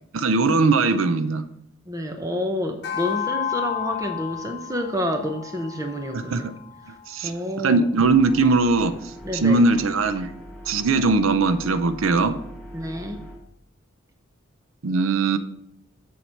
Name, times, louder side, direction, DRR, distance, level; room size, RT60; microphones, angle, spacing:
voice 1, 0.1-1.5 6.1-6.5 6.9-7.3 7.6-9.0 9.4-10.3 10.7-12.4 14.8-15.4, right 3 dB, 75° right, 12 dB, 0.6 m, -20 dB
voice 2, 1.9-6.5 6.8-7.9 9.2-9.6 12.7-13.2, equal, 15° right, 5 dB, 0.6 m, -29 dB
sound 1, 2.8-7.4, left 9 dB, 55° left, 0.9 m, -32 dB
sound 2, 8.0-13.4, equal, 5° left, 1.8 m, -41 dB
7.5 x 6.9 x 4.4 m, 0.74 s
head